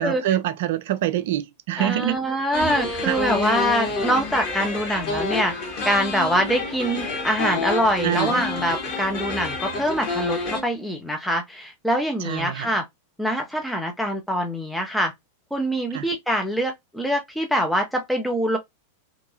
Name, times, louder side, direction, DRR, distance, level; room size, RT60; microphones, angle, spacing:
voice 1, 0.0-2.2 3.1-3.2 8.0-8.3 12.2-12.7 15.9-16.0, right 12 dB, 55° right, 0.3 m, -25 dB
voice 2, 1.8-12.8 13.2-15.1 15.5-18.6, equal, ahead, 0.5 m, -24 dB
sound 1, 2.5-10.6, left 3 dB, 40° left, 1.4 m, -28 dB
2.9 x 2.6 x 2.6 m
figure-of-eight pair, 90°, 0 cm